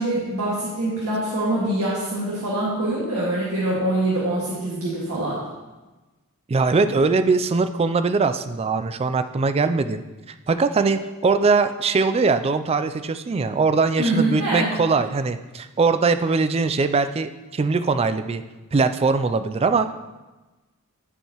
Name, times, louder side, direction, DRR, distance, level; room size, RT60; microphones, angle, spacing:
voice 1, 0.0-5.4 14.0-14.8, right 1 dB, 85° right, -8 dB, 1.8 m, -24 dB
voice 2, 6.5-10.0 10.5-18.4 18.7-19.9, right 4 dB, 25° right, 10 dB, 0.3 m, -21 dB
12.0 x 4.5 x 2.9 m, 1.1 s
head